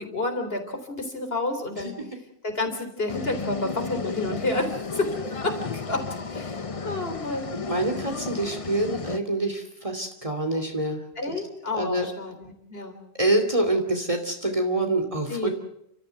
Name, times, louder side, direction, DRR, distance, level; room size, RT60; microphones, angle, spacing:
voice 1, 0.0-1.9 2.4-5.2 5.4-7.6 11.2-13.0 15.3-15.5, left 2 dB, 65° left, 6 dB, 4.1 m, -30 dB
sound 1, 3.1-9.2, left 4 dB, 35° left, 0.9 m, -33 dB
voice 2, 7.7-11.0 11.7-12.1 13.2-15.5, right 1 dB, 30° right, 4 dB, 2.6 m, -26 dB
30.0 x 14.0 x 8.0 m, 0.79 s
omnidirectional pair, 1.1 m